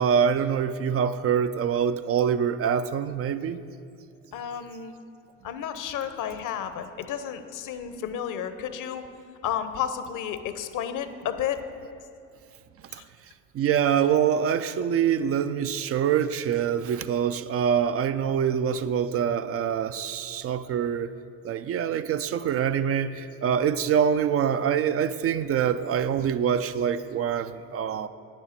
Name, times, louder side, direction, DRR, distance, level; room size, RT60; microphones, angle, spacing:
voice 1, 0.0-3.6 12.9-13.0 13.5-21.1 21.4-28.1, right 8 dB, 40° right, 12 dB, 0.4 m, -25 dB
voice 2, 4.3-4.9 5.4-9.0 9.4-11.6 12.9-13.0, left 9 dB, 55° left, 10 dB, 0.9 m, -32 dB
9.2 x 7.4 x 6.8 m, 2.5 s
hypercardioid pair, 60°, 37 cm